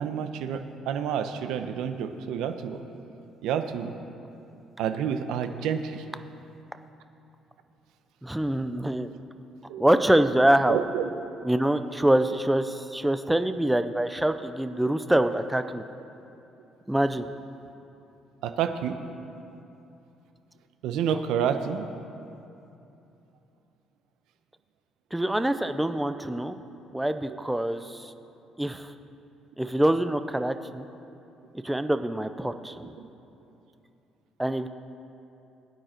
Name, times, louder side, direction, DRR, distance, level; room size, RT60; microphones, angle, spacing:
voice 1, 0.0-2.8 3.4-3.9 4.8-6.0 9.7-9.8 10.7-11.1 18.4-19.0 20.8-21.9, right 8 dB, 85° right, 8 dB, 0.8 m, -29 dB
voice 2, 8.2-9.1 9.8-10.8 11.4-15.8 16.9-17.3 25.1-26.6 26.9-28.1 28.6-28.9 29.6-30.9 31.6-32.9 34.4-34.7, right 1 dB, 5° right, 9 dB, 0.4 m, -25 dB
21.0 x 9.3 x 4.4 m, 2.8 s
cardioid pair, 180°, 0 cm